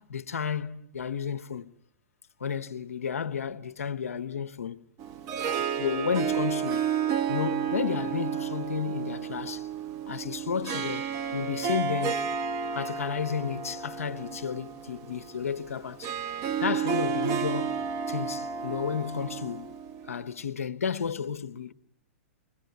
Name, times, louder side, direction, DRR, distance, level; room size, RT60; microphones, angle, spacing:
voice 1, 0.0-1.7 2.4-4.8 5.8-6.8 7.3-9.7 10.1-12.3 12.7-16.1 16.6-19.7 20.1-21.7, left 7 dB, 80° left, 1.3 m, -32 dB
Harp, 5.0-20.3, right 7 dB, 35° right, 1.4 m, -32 dB
28.5 x 22.0 x 9.4 m
hypercardioid pair, 115°, 8 cm